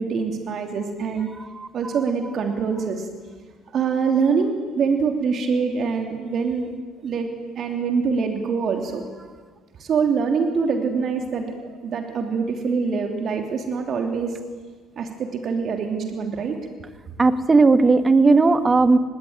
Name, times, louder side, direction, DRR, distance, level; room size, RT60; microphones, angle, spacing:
voice 1, 0.0-1.3 1.7-3.1 3.7-6.7 7.0-7.3 7.5-9.0 9.8-14.4 15.0-16.6, right 5 dB, 50° right, 4 dB, 3.1 m, -24 dB
voice 2, 17.2-19.0, right 3 dB, 25° right, 10 dB, 2.0 m, -16 dB
26.0 x 20.5 x 9.0 m, 1.5 s
hypercardioid pair, 60°, 0 cm